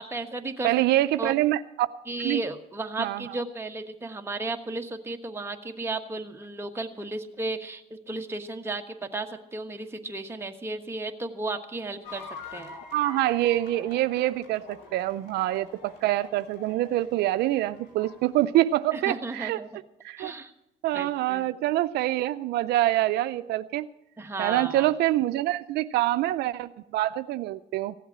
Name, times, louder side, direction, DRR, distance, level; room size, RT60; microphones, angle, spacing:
voice 1, 0.0-0.7 1.2-1.4 2.1-12.2 12.5-12.7 18.9-19.7 20.2-20.5 20.9-21.5 24.2-24.9, right 2 dB, 15° right, 4 dB, 1.3 m, -34 dB
voice 2, 0.6-1.6 2.2-2.4 3.0-3.3 12.9-19.6 20.0-20.3 20.8-23.9 24.4-28.0, right 15 dB, 75° right, 12 dB, 0.5 m, -25 dB
sound 1, 12.0-18.4, left 4 dB, 90° left, 2.7 m, -46 dB
15.5 x 8.0 x 8.6 m, 0.87 s
cardioid pair, 110°, 17 cm